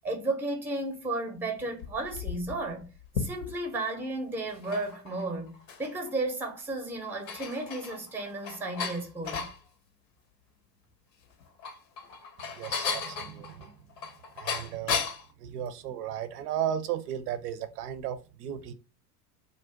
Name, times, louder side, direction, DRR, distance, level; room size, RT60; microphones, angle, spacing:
voice 1, 0.0-2.8 3.2-9.5, right 2 dB, 5° right, 0.6 m, -33 dB
sound 1, 1.6-3.8 4.4-6.1 6.5-6.6 7.0-9.6 11.3-15.3, left 5 dB, 80° left, 0.8 m, -35 dB
voice 2, 12.5-13.7 14.4-15.0 15.4-18.7, right 10 dB, 70° right, 0.6 m, -35 dB
2.5 x 2.1 x 3.7 m
hypercardioid pair, 85°, 49 cm